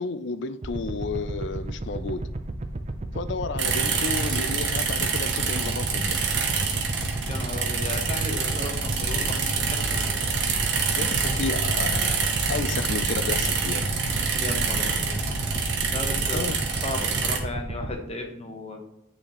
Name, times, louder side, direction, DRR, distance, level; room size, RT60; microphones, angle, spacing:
voice 1, 0.0-2.2 3.1-6.2 10.9-13.9 16.3-16.6, left 4 dB, 55° left, 0.4 m, -32 dB
sound 1, 0.6-17.9, right 2 dB, 35° right, 0.5 m, -33 dB
sound 2, 3.6-17.4, right 5 dB, 55° right, 0.9 m, -27 dB
voice 2, 7.2-10.1 14.4-15.1 15.9-16.5 16.8-18.8, left 2 dB, 30° left, 0.9 m, -35 dB
sound 3, 8.7-16.4, left 1 dB, 75° left, 0.8 m, -36 dB
9.0 x 4.2 x 3.0 m
head